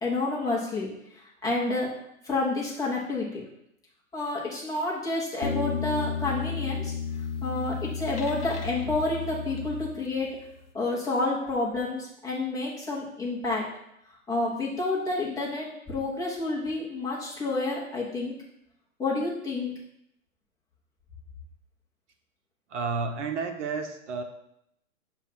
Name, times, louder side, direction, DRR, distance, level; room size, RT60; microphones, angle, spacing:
voice 1, 0.0-0.9 1.4-1.9 2.2-3.4 4.1-6.9 7.4-10.3 10.7-13.6 14.3-18.3 19.0-19.7, left 2 dB, 10° left, -6 dB, 0.8 m, -29 dB
sound 1, 5.4-10.3, left 6 dB, 60° left, 1.0 m, -32 dB
voice 2, 22.7-24.2, right 4 dB, 55° right, 6 dB, 0.9 m, -31 dB
7.2 x 2.5 x 5.6 m, 0.79 s
hypercardioid pair, 145°, 42 cm